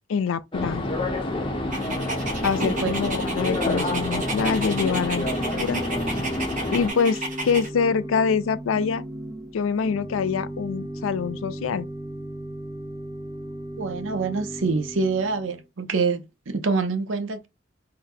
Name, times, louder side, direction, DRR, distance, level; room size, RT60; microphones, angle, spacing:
voice 1, 0.1-0.8 2.4-5.3 5.6-5.8 6.7-9.0 9.5-11.9, left 6 dB, 85° left, 0.4 m, -25 dB
sound 1, 0.5-6.9, left 1 dB, 25° left, 0.7 m, -28 dB
Organ / Church bell, 1.5-15.6, right 1 dB, 15° right, 0.5 m, -36 dB
Dog, 1.7-7.7, right 2 dB, 40° right, 1.2 m, -33 dB
voice 2, 2.6-2.9 13.8-17.5, right 4 dB, 75° right, 0.7 m, -26 dB
3.9 x 2.1 x 4.0 m
head